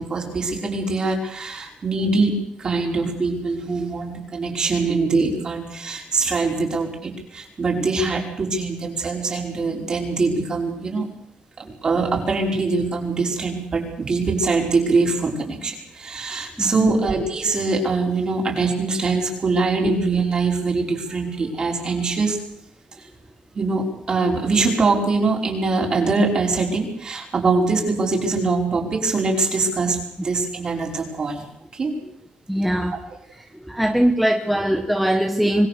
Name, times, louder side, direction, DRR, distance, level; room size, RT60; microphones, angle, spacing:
voice 1, 0.0-11.0 11.8-22.4 23.0-23.1 23.5-31.5 31.7-31.9, right 3 dB, 30° right, 1 dB, 5.4 m, -23 dB
voice 2, 16.6-17.0 19.8-20.0 32.5-33.0 33.4-35.7, right 1 dB, ahead, 3 dB, 1.4 m, -21 dB
26.0 x 20.0 x 6.8 m, 0.71 s
cardioid pair, 165°, 2 cm